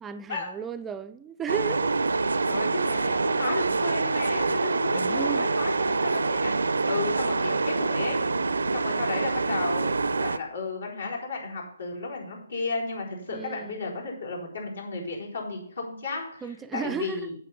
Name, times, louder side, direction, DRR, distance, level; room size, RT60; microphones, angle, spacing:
voice 1, 0.0-1.9 4.9-5.5 13.3-13.8 16.4-17.3, right 7 dB, 10° right, 0.4 m, -34 dB
sound 1, 1.5-10.4, right 3 dB, 75° right, 0.5 m, -26 dB
voice 2, 2.5-8.2 8.7-16.4 16.7-17.3, left 3 dB, 70° left, 4.1 m, -33 dB
8.2 x 7.1 x 5.6 m
figure-of-eight pair, 140°, 0 cm